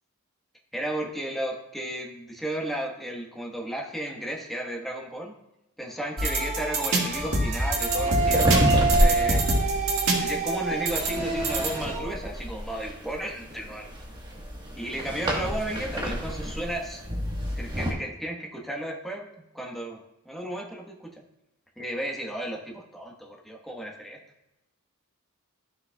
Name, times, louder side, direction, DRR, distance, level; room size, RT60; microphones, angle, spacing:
voice 1, 0.7-5.3 5.8-9.4 10.1-13.9 14.7-17.0 17.6-19.3 19.5-20.0 20.2-21.1 21.8-24.2, right 1 dB, ahead, -1 dB, 1.3 m, -34 dB
sound 1, 6.2-12.0, right 3 dB, 70° right, 1.9 m, -25 dB
sound 2, 7.1-17.9, equal, 20° right, 1.4 m, -29 dB
12.5 x 6.2 x 2.4 m, 0.91 s
head